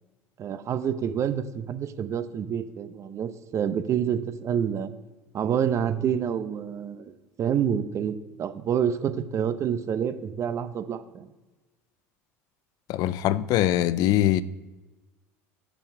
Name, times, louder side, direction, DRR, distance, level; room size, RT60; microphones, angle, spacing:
voice 1, 0.4-4.9 5.3-7.1 7.4-11.3, right 8 dB, 45° right, 0.7 m, -28 dB
voice 2, 12.9-14.4, left 13 dB, 60° left, 0.4 m, -22 dB
6.8 x 5.5 x 6.1 m
hypercardioid pair, 80°, 7 cm